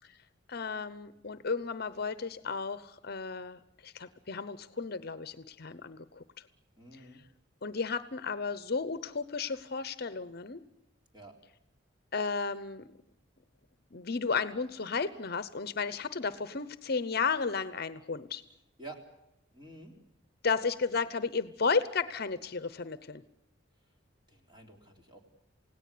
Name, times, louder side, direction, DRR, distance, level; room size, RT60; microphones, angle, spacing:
voice 1, 0.5-6.2 7.6-10.6 12.1-12.8 13.9-18.4 20.4-23.2, left 5 dB, 50° left, 14 dB, 0.8 m, -33 dB
voice 2, 6.8-7.2 11.1-11.3 18.8-19.0 19.5-19.9 24.3-25.2, right 2 dB, 20° right, 2 dB, 3.7 m, -49 dB
28.0 x 17.5 x 8.5 m, 0.87 s
head